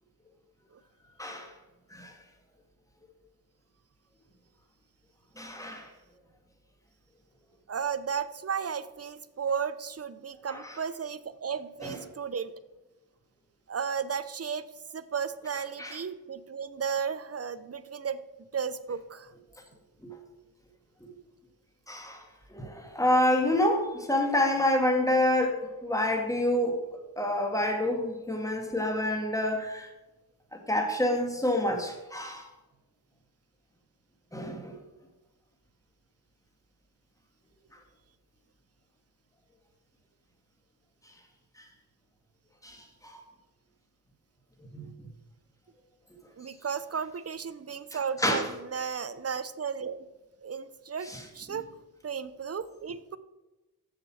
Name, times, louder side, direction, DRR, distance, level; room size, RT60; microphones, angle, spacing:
voice 1, 1.2-1.5 1.9-2.1 5.4-5.9 10.5-10.8 11.8-12.0 15.8-16.0 20.0-20.1 21.0-21.1 21.9-22.2 22.5-26.8 27.2-29.9 30.5-32.5 34.3-34.7 42.6-42.8 43.1-43.2 44.7-44.9 48.2-48.5 51.0-51.2, left 1 dB, 10° left, 2 dB, 2.0 m, -28 dB
voice 2, 7.7-12.5 13.7-14.7 14.9-19.3 46.4-50.0 50.4-51.7 52.0-53.2, right 6 dB, 35° right, 14 dB, 0.6 m, -34 dB
7.3 x 6.8 x 6.3 m, 1.0 s
cardioid pair, 55°, 42 cm